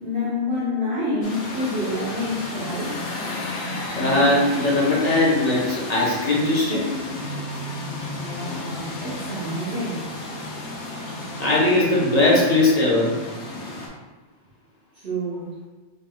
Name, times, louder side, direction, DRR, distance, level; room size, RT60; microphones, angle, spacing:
voice 1, 0.0-3.0 8.2-10.1 14.9-15.5, left 1 dB, 70° right, -11 dB, 1.4 m, -28 dB
sound 1, 1.2-13.9, left 2 dB, 80° left, 1.1 m, -32 dB
voice 2, 3.9-6.9 11.4-13.1, left 2 dB, 40° left, -6 dB, 1.0 m, -19 dB
3.9 x 3.9 x 2.3 m, 1.2 s
omnidirectional pair, 1.1 m